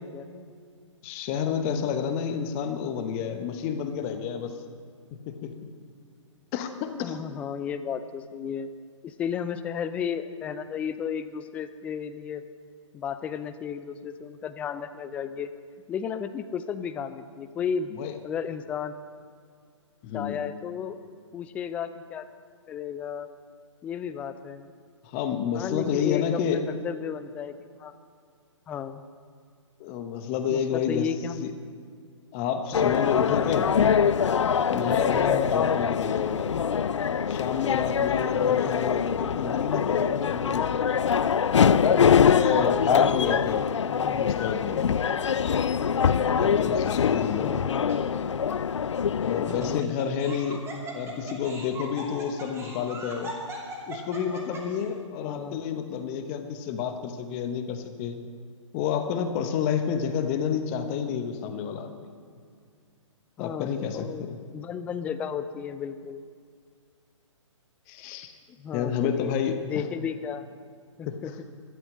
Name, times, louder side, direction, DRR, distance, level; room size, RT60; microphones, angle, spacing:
voice 1, 0.1-0.4 1.6-1.9 7.0-8.7 9.0-12.4 12.9-15.5 15.9-18.9 20.1-21.0 21.3-22.3 22.7-23.3 23.8-24.7 25.5-27.5 27.8-27.9 28.7-29.0 30.5-31.5 32.7-33.3 35.2-35.6 38.3-38.9 42.0-43.5 43.9-44.4 47.4-48.3 49.5-50.0 55.2-55.6 63.4-64.3 64.5-66.2 68.5-69.3 69.7-70.5 71.0-71.3, left 7 dB, 10° left, 12 dB, 0.3 m, -34 dB
voice 2, 1.0-4.5 5.1-5.7 6.5-7.2 18.0-18.1 20.0-20.4 25.0-26.6 29.8-31.1 31.4-31.5 32.3-33.8 34.7-36.6 37.3-40.7 41.6-43.7 44.1-45.0 46.1-47.6 49.2-50.7 50.9-53.3 53.9-58.2 58.7-62.1 63.4-64.4 67.9-68.3 68.7-69.8 71.1-71.3, left 7 dB, 25° left, 8 dB, 1.0 m, -30 dB
sound 1, 32.7-49.8, left 7 dB, 65° left, 0.5 m, -24 dB
Laughter, 46.8-47.3 47.9-48.0 49.2-54.8, right 1 dB, 15° right, 2.6 m, -40 dB
12.5 x 12.0 x 6.5 m, 2.2 s
figure-of-eight pair, 130°, 16 cm